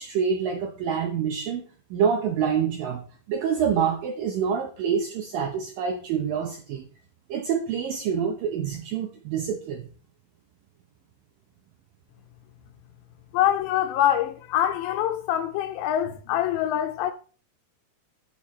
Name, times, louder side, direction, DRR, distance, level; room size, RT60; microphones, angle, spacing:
voice 1, 0.0-1.6 1.9-6.8 7.3-9.9, right 7 dB, 85° right, 2.0 m, -26 dB
voice 2, 13.3-17.1, left 11 dB, 80° left, 2.6 m, -24 dB
13.0 x 7.1 x 3.2 m
omnidirectional pair, 5.2 m